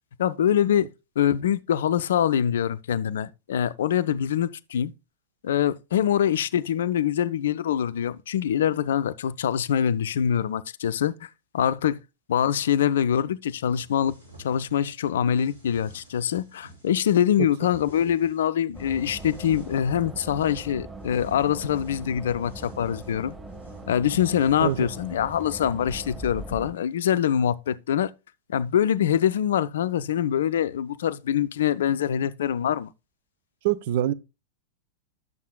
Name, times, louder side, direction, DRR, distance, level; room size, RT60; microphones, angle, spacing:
voice 1, 0.2-0.9 1.2-4.9 5.4-11.3 11.5-12.0 12.3-14.2 14.4-23.4 23.9-28.1 28.5-32.9, left 9 dB, 60° left, 0.4 m, -24 dB
sound 1, 13.7-14.9 15.2-17.1 17.4-18.5 18.7-20.7 21.0-26.1, right 2 dB, 80° right, 3.2 m, -52 dB
sound 2, 18.7-26.7, right 2 dB, 10° right, 2.5 m, -41 dB
voice 2, 33.6-34.1, right 12 dB, 50° right, 0.4 m, -23 dB
11.0 x 7.3 x 2.2 m
figure-of-eight pair, 90°, 0 cm